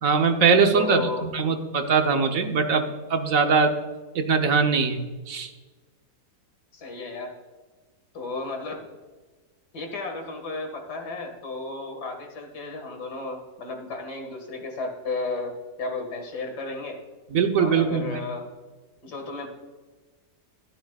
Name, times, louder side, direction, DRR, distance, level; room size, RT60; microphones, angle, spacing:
voice 1, 0.0-3.7 4.1-5.5 17.3-18.2, right 5 dB, 60° right, 6 dB, 1.2 m, -22 dB
voice 2, 0.7-1.3 6.7-7.3 8.1-8.9 9.7-15.5 15.8-17.0 17.6-18.5 19.0-19.5, left 3 dB, 85° left, 4 dB, 2.4 m, -33 dB
13.0 x 11.5 x 2.3 m, 1.3 s
omnidirectional pair, 1.7 m